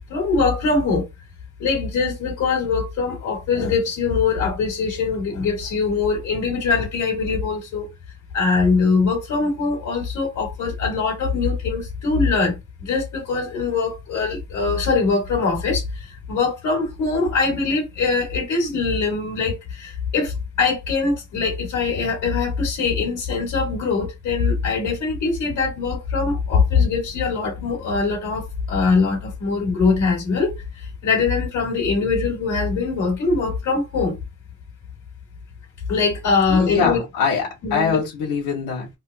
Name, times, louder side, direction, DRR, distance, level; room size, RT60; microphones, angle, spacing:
voice 1, 0.1-1.1 1.6-7.9 8.3-34.2 35.9-37.0 37.6-38.0, left 4 dB, 55° left, 2.9 m, -22 dB
voice 2, 36.5-38.9, left 6 dB, 80° left, 2.4 m, -23 dB
4.7 x 2.5 x 3.1 m
cardioid pair, 170°, 34 cm